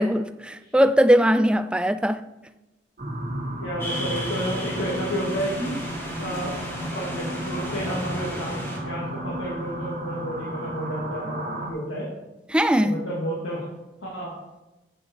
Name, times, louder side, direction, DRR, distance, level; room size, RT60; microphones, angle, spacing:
voice 1, 0.0-2.2 12.5-13.0, equal, 5° right, 0.3 m, -20 dB
sound 1, 3.0-11.7, right 1 dB, 40° right, 1.8 m, -33 dB
voice 2, 3.6-5.8 6.2-6.5 6.9-12.1 12.8-13.6 14.0-14.3, equal, 90° left, 2.5 m, -31 dB
sound 2, 3.8-8.8, equal, 10° left, 1.9 m, -34 dB
11.5 x 8.1 x 4.7 m
head